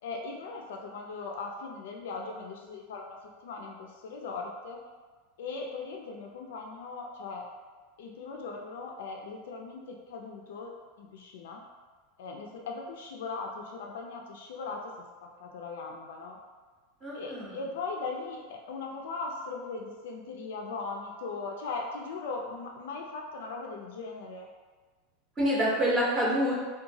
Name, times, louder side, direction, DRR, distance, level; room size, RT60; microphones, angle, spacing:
voice 1, 0.0-3.2 3.4-4.8 5.4-7.4 8.0-10.7 11.0-11.6 12.2-14.9 15.4-16.4 17.1-24.5, left 4 dB, 85° left, 1 dB, 0.3 m, -39 dB
voice 2, 17.0-17.5 25.4-26.5, equal, 20° right, -6 dB, 0.6 m, -27 dB
2.8 x 2.2 x 2.6 m, 1.4 s
supercardioid pair, 160°, 0 cm